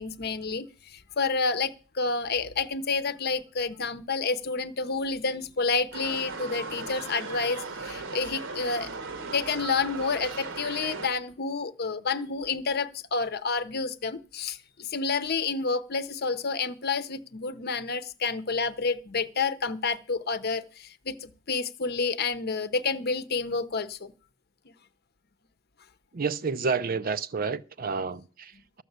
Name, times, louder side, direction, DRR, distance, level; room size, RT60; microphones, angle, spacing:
voice 1, 0.0-8.9 9.2-24.1 24.7-24.8, left 4 dB, 50° left, 0.8 m, -29 dB
sound 1, 5.9-11.1, right 4 dB, 60° right, 1.1 m, -37 dB
voice 2, 26.1-28.8, right 5 dB, 45° right, 0.5 m, -30 dB
13.0 x 6.2 x 8.0 m
head